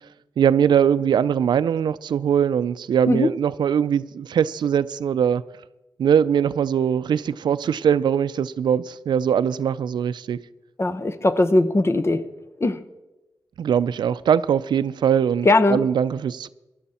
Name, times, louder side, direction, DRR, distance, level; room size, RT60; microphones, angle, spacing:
voice 1, 0.4-5.4 6.0-10.4 13.6-16.5, right 8 dB, 85° right, 0.4 m, -21 dB
voice 2, 10.8-12.2 12.6-12.8 15.4-15.8, left 2 dB, 35° left, 0.9 m, -19 dB
16.0 x 11.5 x 4.3 m
cardioid pair, 70°, 8 cm